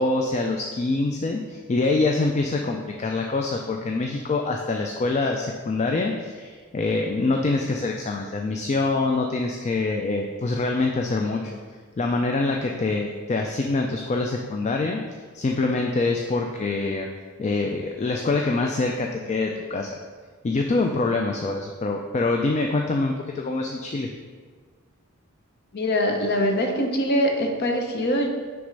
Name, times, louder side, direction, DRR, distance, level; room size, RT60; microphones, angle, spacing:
voice 1, 0.0-11.5 12.0-15.0 15.3-17.1 17.4-20.0 20.4-24.1, left 3 dB, 30° left, 2 dB, 0.3 m, -25 dB
voice 2, 25.7-28.3, equal, 50° left, 3 dB, 0.8 m, -23 dB
6.3 x 3.5 x 5.2 m, 1.5 s
head